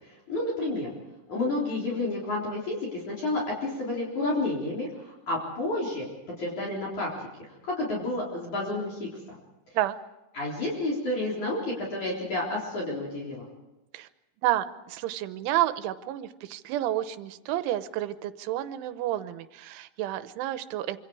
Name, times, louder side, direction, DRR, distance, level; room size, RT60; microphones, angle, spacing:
voice 1, 0.0-0.9 1.3-6.1 6.4-7.1 7.6-9.4 10.3-13.5, left 2 dB, 40° left, -3 dB, 4.9 m, -30 dB
voice 2, 14.4-21.0, right 13 dB, 85° right, 12 dB, 3.3 m, -30 dB
26.0 x 25.5 x 4.8 m, 1.0 s
omnidirectional pair, 5.4 m